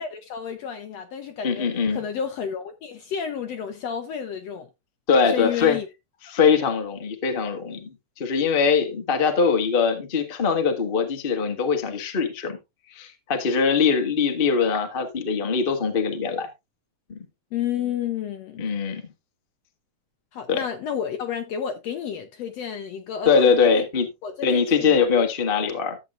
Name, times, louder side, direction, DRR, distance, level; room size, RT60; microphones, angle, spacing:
voice 1, 0.0-4.7 5.2-5.9 17.5-18.6 20.3-23.8 24.2-25.3, left 8 dB, 70° left, 1.7 m, -31 dB
voice 2, 1.4-2.0 5.1-5.8 6.3-12.6 12.9-16.5 17.1-17.2 18.6-19.0 20.5-20.6 23.2-24.1 24.4-26.0, left 5 dB, 35° left, 0.9 m, -22 dB
13.5 x 7.9 x 2.5 m
omnidirectional pair, 3.7 m